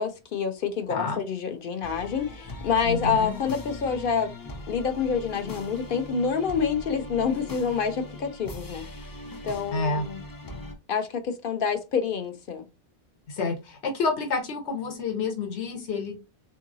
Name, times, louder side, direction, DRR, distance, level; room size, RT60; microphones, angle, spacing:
voice 1, 0.0-4.3 4.7-8.8 9.4-10.2 10.9-12.6, left 6 dB, 60° left, 0.7 m, -27 dB
voice 2, 0.9-1.2 2.8-3.3 9.7-10.0 13.3-16.2, left 4 dB, 80° left, 1.3 m, -29 dB
sound 1, 1.8-10.7, left 2 dB, 35° left, 0.3 m, -40 dB
3.7 x 2.7 x 2.6 m
omnidirectional pair, 1.1 m